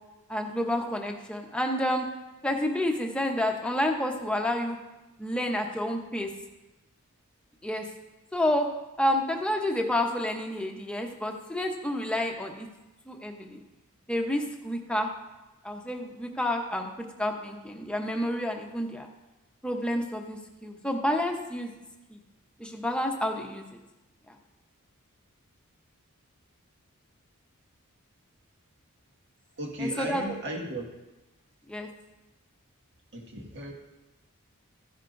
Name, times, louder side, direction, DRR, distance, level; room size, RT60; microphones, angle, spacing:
voice 1, 0.3-2.1 2.4-4.8 5.2-6.3 7.6-7.9 8.3-8.7 9.0-12.7 13.1-13.6 14.1-15.1 15.6-19.1 19.6-21.7 22.1-22.2 22.6-23.8 24.3-24.4 29.8-30.3 31.7-31.9, left 1 dB, 5° left, 2 dB, 0.9 m, -29 dB
voice 2, 29.6-30.9 33.1-33.7, right 1 dB, 55° right, 0 dB, 1.8 m, -35 dB
14.5 x 10.5 x 2.6 m, 1.0 s
head